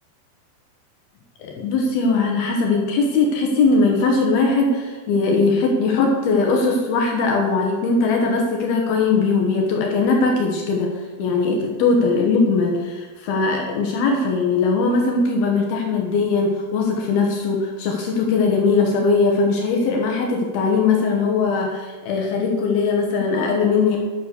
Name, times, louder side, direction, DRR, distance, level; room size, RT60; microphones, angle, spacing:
voice 1, 1.4-24.0, left 4 dB, 70° left, 1 dB, 3.0 m, -20 dB
11.0 x 6.4 x 6.7 m, 1.4 s
omnidirectional pair, 4.7 m